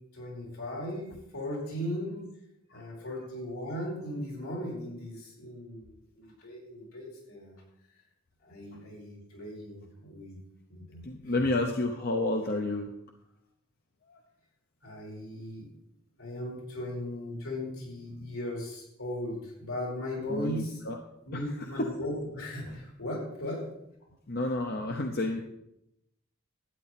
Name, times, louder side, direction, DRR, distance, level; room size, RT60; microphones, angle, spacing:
voice 1, 0.1-2.2 2.7-5.9 6.2-7.6 8.4-10.4 10.7-11.4 14.8-15.7 16.2-20.9 21.3-23.6, left 1 dB, 80° left, -2 dB, 4.6 m, -37 dB
voice 2, 11.0-12.9 14.1-14.2 20.3-21.0 21.3-21.4 21.8-21.9 24.3-25.4, left 2 dB, 50° left, 3 dB, 0.9 m, -30 dB
12.5 x 8.9 x 4.3 m, 0.80 s
head